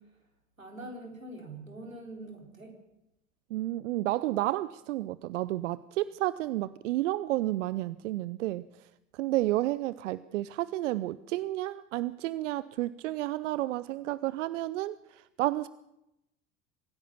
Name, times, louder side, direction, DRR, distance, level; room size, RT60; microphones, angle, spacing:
voice 1, 0.6-2.7, right 2 dB, 90° right, 2 dB, 4.2 m, -44 dB
voice 2, 3.5-8.6 9.1-15.7, right 16 dB, 65° right, 18 dB, 0.7 m, -31 dB
24.5 x 16.0 x 7.0 m, 0.88 s
figure-of-eight pair, 65°, 39 cm